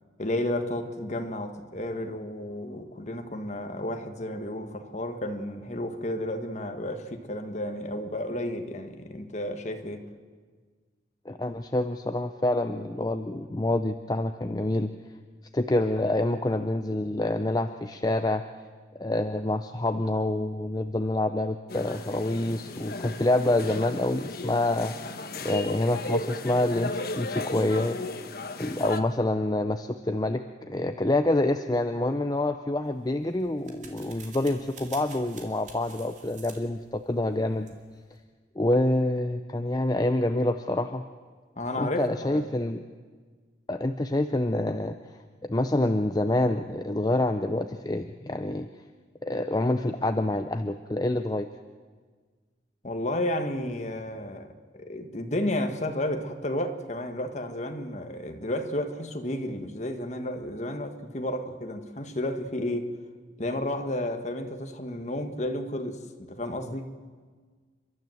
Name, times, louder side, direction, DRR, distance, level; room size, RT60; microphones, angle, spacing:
voice 1, 0.2-10.1 41.6-42.4 52.8-62.9 63.4-66.9, left 1 dB, 40° left, 6 dB, 1.5 m, -32 dB
voice 2, 11.3-14.9 15.5-18.4 18.9-24.9 25.4-28.0 28.6-37.7 38.6-41.0 41.8-42.8 43.7-44.9 45.4-48.7 49.2-51.5, left 1 dB, 20° left, 8 dB, 0.5 m, -27 dB
sound 1, 21.7-29.0, left 2 dB, 55° left, 1.2 m, -35 dB
sound 2, 32.9-38.2, right 5 dB, 40° right, 2.5 m, -50 dB
30.0 x 12.0 x 7.9 m, 1.5 s
head